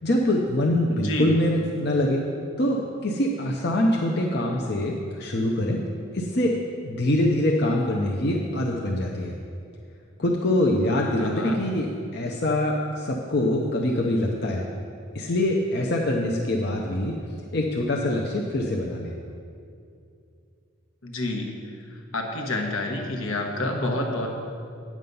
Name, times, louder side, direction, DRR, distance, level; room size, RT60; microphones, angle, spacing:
voice 1, 0.0-2.2 2.6-5.8 6.1-6.6 6.8-9.4 10.2-11.9 12.1-14.7 15.1-17.2 17.5-19.1, left 1 dB, 50° left, -1 dB, 0.7 m, -24 dB
voice 2, 0.9-1.4 11.2-11.6 21.0-21.5 21.9-24.3, left 2 dB, 75° left, 2 dB, 1.2 m, -29 dB
9.5 x 7.4 x 5.4 m, 2.5 s
head